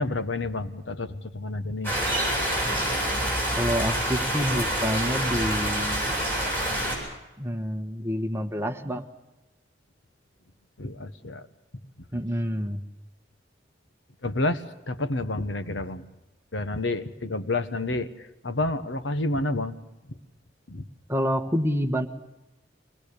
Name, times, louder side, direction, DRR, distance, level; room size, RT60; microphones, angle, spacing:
voice 1, 0.0-1.9 10.8-11.5 14.2-16.0 16.5-19.8 20.1-20.2 20.7-20.8, left 2 dB, 90° left, 10 dB, 1.4 m, -29 dB
sound 1, 1.8-7.0, right 1 dB, 10° left, 8.0 m, -27 dB
voice 2, 3.6-6.1 7.4-9.0 12.1-12.8 21.1-22.1, equal, 15° right, 6 dB, 1.3 m, -28 dB
24.0 x 19.5 x 6.8 m, 0.98 s
head